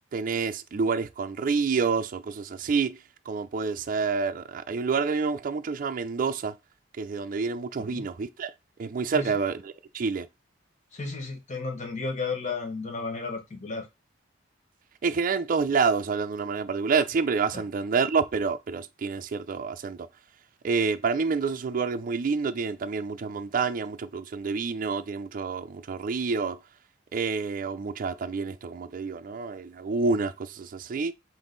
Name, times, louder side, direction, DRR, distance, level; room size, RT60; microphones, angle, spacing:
voice 1, 0.1-3.0 3.3-6.5 7.0-8.5 8.8-10.3 15.0-20.0 20.6-26.6 27.1-31.1, right 5 dB, 45° right, 0.4 m, -28 dB
voice 2, 10.9-13.9 17.5-17.6, left 4 dB, 40° left, 0.9 m, -33 dB
3.6 x 2.7 x 3.8 m
head